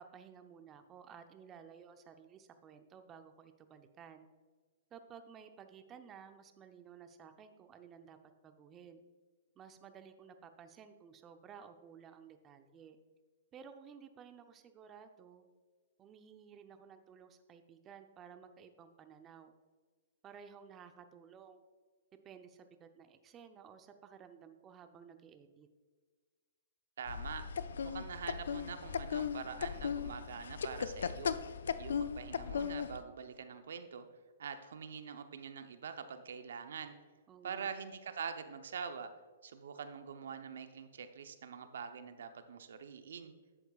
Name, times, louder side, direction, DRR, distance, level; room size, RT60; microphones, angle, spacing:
voice 1, 0.0-4.3 4.9-8.2 8.4-9.0 9.6-13.0 13.5-15.5 16.0-19.5 20.2-21.6 22.2-25.7 37.3-37.7, right 7 dB, 25° right, 8 dB, 0.7 m, -55 dB
voice 2, 27.0-27.4 27.8-31.4 31.8-34.1 34.4-36.9 37.4-39.1 39.4-43.3, right 6 dB, 75° right, 9 dB, 0.7 m, -44 dB
sound 1, 27.1-33.0, left 7 dB, 80° left, 0.4 m, -37 dB
11.0 x 8.0 x 2.4 m, 1.5 s
hypercardioid pair, 135°, 0 cm